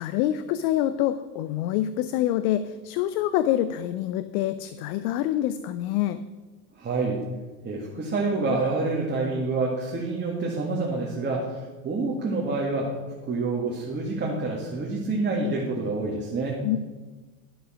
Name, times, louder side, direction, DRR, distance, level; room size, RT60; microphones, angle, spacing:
voice 1, 0.0-6.2 16.6-16.8, left 12 dB, 60° left, 13 dB, 0.7 m, -26 dB
voice 2, 6.8-7.2 7.6-12.9 13.3-16.6, right 3 dB, 20° right, -2 dB, 1.9 m, -27 dB
11.5 x 6.2 x 6.2 m, 1.3 s
supercardioid pair, 105°, 49 cm